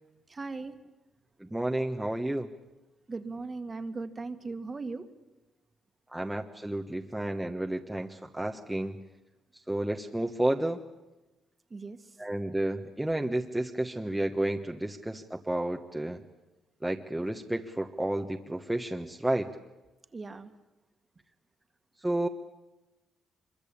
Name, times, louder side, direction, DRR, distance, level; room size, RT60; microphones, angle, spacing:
voice 1, 0.3-0.7 3.1-5.1 11.7-12.0 20.1-20.5, right 3 dB, 30° right, 9 dB, 1.9 m, -38 dB
voice 2, 1.4-2.5 6.1-9.0 9.7-10.8 12.2-16.2 16.8-19.5 22.0-22.3, right 1 dB, 10° right, 2 dB, 1.3 m, -31 dB
25.0 x 23.0 x 8.7 m, 1.0 s
cardioid pair, 90°, 0 cm